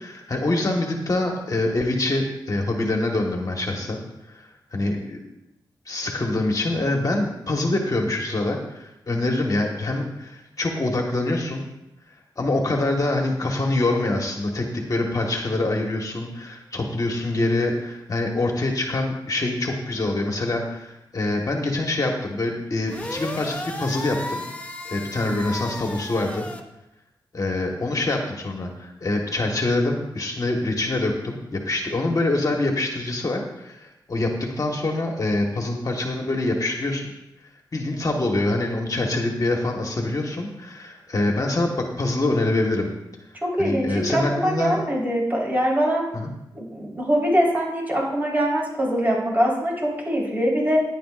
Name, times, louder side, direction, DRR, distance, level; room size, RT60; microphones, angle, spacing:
voice 1, 0.0-4.0 4.3-5.2 5.9-11.7 12.4-24.4 24.8-26.5 27.3-37.1 37.7-42.9 43.6-44.8 46.1-46.3, left 2 dB, 45° left, 1 dB, 1.5 m, -25 dB
sound 1, 22.9-26.6, left 1 dB, 20° left, 1.2 m, -34 dB
voice 2, 43.4-46.0 46.5-50.8, equal, 20° right, -3 dB, 4.1 m, -23 dB
15.5 x 10.5 x 2.5 m, 0.90 s
wide cardioid pair, 80°, 8 cm